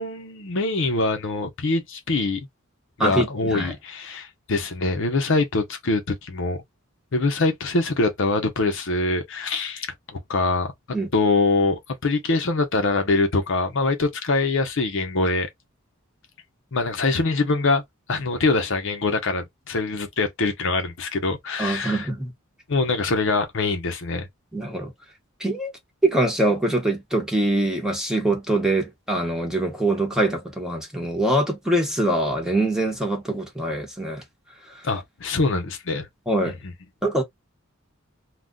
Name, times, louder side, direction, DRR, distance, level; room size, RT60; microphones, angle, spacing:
voice 1, 0.0-2.4 3.0-6.6 7.1-9.9 10.3-15.5 16.7-17.8 18.1-22.1 22.7-24.3 34.8-36.1, left 3 dB, 60° left, 0.7 m, -24 dB
voice 2, 3.0-3.7 10.9-11.1 21.6-22.3 24.5-24.9 25.4-25.7 26.0-34.2 34.7-34.8 36.3-36.6 37.0-37.2, right 1 dB, 5° right, 0.9 m, -23 dB
2.4 x 2.2 x 3.7 m
head